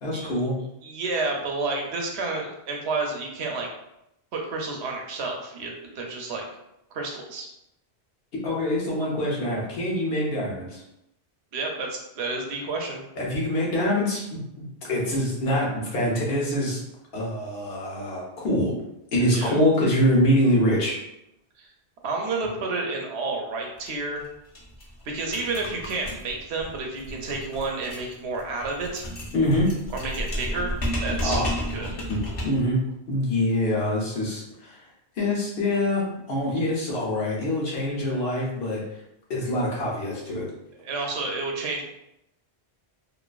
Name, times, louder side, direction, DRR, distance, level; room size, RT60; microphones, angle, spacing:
voice 1, 0.0-0.6 8.4-10.8 13.2-16.8 17.1-18.7 19.1-21.0 29.3-29.7 31.2-31.5 32.1-32.8 33.1-34.8 35.2-38.8 39.3-40.5, left 1 dB, 65° left, -4 dB, 1.0 m, -25 dB
voice 2, 0.8-3.7 4.3-6.5 6.9-7.5 11.5-13.0 19.3-19.6 21.6-21.7 22.0-24.3 25.0-29.0 29.9-30.7 31.0-31.4 31.7-31.9 40.8-41.8, right 3 dB, 85° right, 1 dB, 0.9 m, -30 dB
sound 1, 23.8-23.9 24.2-24.3 24.5-32.7, equal, 40° left, 0.6 m, -32 dB
2.6 x 2.5 x 2.3 m, 0.84 s
omnidirectional pair, 1.1 m